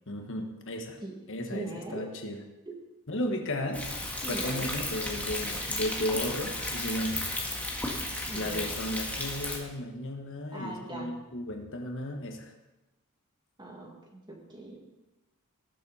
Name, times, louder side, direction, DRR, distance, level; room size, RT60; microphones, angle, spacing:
voice 1, 0.1-1.0 1.3-2.4 3.1-3.9 4.3-7.2 8.3-12.5, left 1 dB, 60° left, 4 dB, 1.4 m, -34 dB
voice 2, 1.0-2.1 2.7-2.8 4.2-4.7 8.3-8.6 10.5-11.1 13.6-14.8, right 1 dB, 20° right, -1 dB, 2.3 m, -40 dB
Thunder, 3.7-9.6, left 1 dB, 5° left, 1.8 m, -34 dB
18.5 x 7.3 x 4.2 m, 1.0 s
head